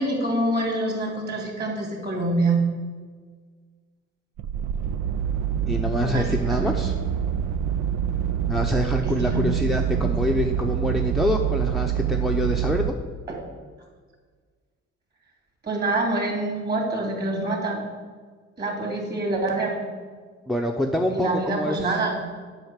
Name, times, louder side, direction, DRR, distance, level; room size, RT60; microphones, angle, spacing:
voice 1, 0.0-2.6 6.0-6.8 9.0-10.0 13.3-13.4 15.6-17.9 18.6-19.8 21.1-22.2, right 2 dB, 35° right, 1 dB, 2.9 m, -26 dB
sound 1, 4.4-12.9, right 9 dB, 90° right, 0.6 m, -26 dB
voice 2, 5.7-6.9 8.5-12.9 20.5-22.0, left 1 dB, ahead, 2 dB, 0.7 m, -25 dB
7.9 x 5.6 x 7.4 m, 1.5 s
cardioid pair, 90°, 30 cm